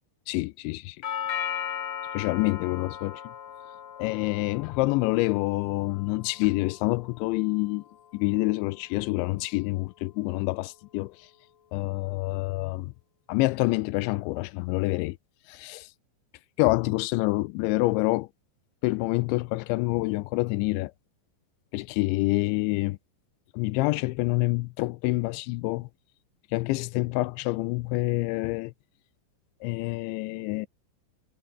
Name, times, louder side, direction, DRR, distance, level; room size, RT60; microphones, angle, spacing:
voice 1, 0.3-1.0 2.1-3.3 4.0-7.8 8.1-11.3 11.7-12.9 13.3-15.2 15.5-15.9 16.6-18.3 18.8-20.9 21.7-23.0 23.5-25.9 26.5-28.7 29.6-30.7, left 22 dB, 85° left, 2.9 m, -27 dB
Doorbell, 1.0-9.1, left 9 dB, 50° left, 2.2 m, -38 dB
omnidirectional pair, 5.4 m